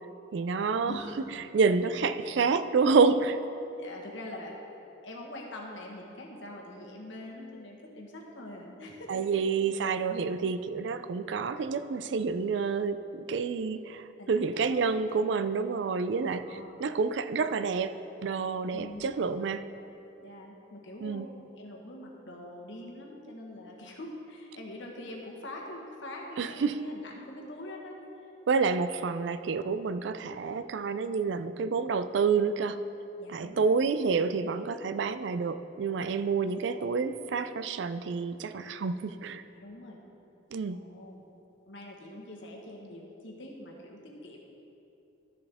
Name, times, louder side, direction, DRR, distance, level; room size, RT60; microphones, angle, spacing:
voice 1, 0.3-1.0 1.5-3.4 9.1-17.9 18.2-19.6 21.0-21.3 26.4-26.7 28.5-32.8 33.3-39.4 40.5-40.8, right 5 dB, 65° right, 12 dB, 0.4 m, -28 dB
voice 2, 0.8-1.2 1.6-2.1 3.8-4.6 5.0-9.2 14.2-15.2 16.1-16.8 18.7-19.2 20.2-28.0 33.2-33.7 36.1-36.8 39.5-40.0 40.7-41.2 41.7-44.4, left 1 dB, 75° left, -1 dB, 1.3 m, -44 dB
13.0 x 6.9 x 3.5 m, 2.8 s
head